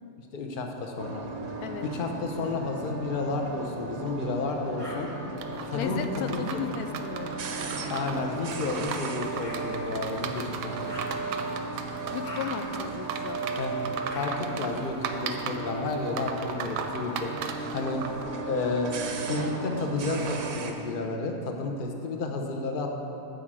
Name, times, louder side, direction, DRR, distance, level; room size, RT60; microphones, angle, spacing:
voice 1, 0.3-1.3 1.8-5.1 5.7-6.6 7.9-10.9 13.6-13.8 14.1-17.4 17.7-18.0 18.5-18.9 19.3-22.9, left 3 dB, 45° left, 2 dB, 0.7 m, -31 dB
sound 1, 1.0-20.7, right 2 dB, 55° right, 0.8 m, -36 dB
sound 2, 4.8-5.0 5.8-6.0 8.0-8.2 9.4-9.6 10.8-11.1 12.2-12.4 14.1-14.3 15.8-16.6 17.5-18.4 19.3-20.2, left 1 dB, 20° left, 1.5 m, -46 dB
sound 3, 5.4-18.2, right 6 dB, 80° right, 1.2 m, -37 dB
voice 2, 5.7-7.4 12.1-13.5, left 6 dB, 75° left, 8 dB, 1.0 m, -35 dB
8.9 x 5.1 x 7.5 m, 3.0 s
omnidirectional pair, 1.8 m